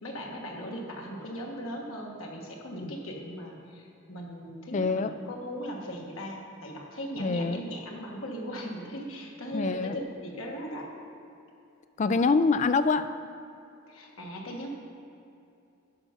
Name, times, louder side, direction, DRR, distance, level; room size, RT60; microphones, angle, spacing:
voice 1, 0.0-10.9 13.9-14.7, equal, 90° left, 0 dB, 1.4 m, -38 dB
voice 2, 4.7-5.1 7.2-7.6 9.5-10.0 12.0-13.1, left 4 dB, 35° left, 11 dB, 0.3 m, -25 dB
10.0 x 5.6 x 5.6 m, 2.7 s
head